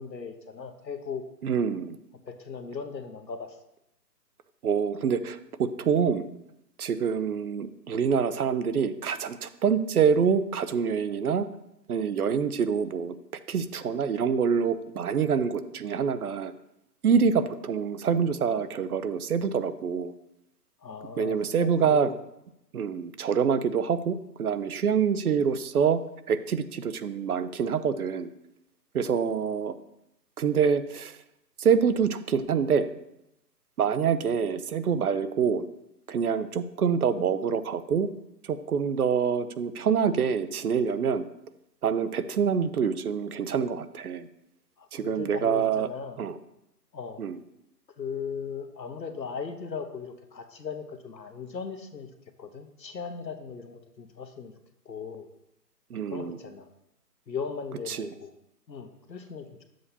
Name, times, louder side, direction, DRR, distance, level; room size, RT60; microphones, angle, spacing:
voice 1, 0.0-1.2 2.2-3.6 20.8-22.2 44.8-46.2 46.9-47.2 48.0-52.1 52.4-54.5 54.8-55.3 56.1-56.7 57.3-58.3 58.7-59.6, left 6 dB, 90° left, 7 dB, 1.2 m, -38 dB
voice 2, 1.4-2.0 4.6-6.3 6.8-11.5 11.9-13.1 13.5-16.5 17.0-20.1 21.2-22.1 22.7-26.0 26.3-28.3 28.9-29.7 30.4-31.2 31.6-32.9 33.8-35.6 36.1-38.1 38.4-41.3 41.8-44.3 44.9-45.9 46.2-46.4 47.2-47.4 55.9-56.4 57.9-58.1, right 6 dB, 60° right, 12 dB, 0.7 m, -26 dB
9.6 x 7.6 x 2.8 m, 0.84 s
figure-of-eight pair, 150°, 49 cm